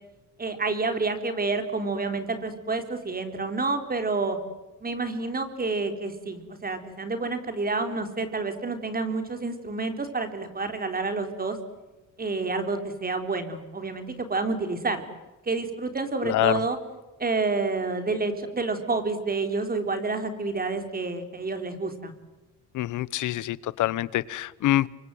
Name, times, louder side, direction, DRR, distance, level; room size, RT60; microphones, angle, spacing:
voice 1, 0.4-4.4 4.8-11.6 12.2-15.0 15.5-16.8 17.2-22.1, right 3 dB, 30° right, 7 dB, 3.9 m, -29 dB
voice 2, 16.2-16.6 22.7-24.9, left 15 dB, 85° left, 20 dB, 1.0 m, -25 dB
29.0 x 24.0 x 7.9 m, 1.1 s
cardioid pair, 90°, 30 cm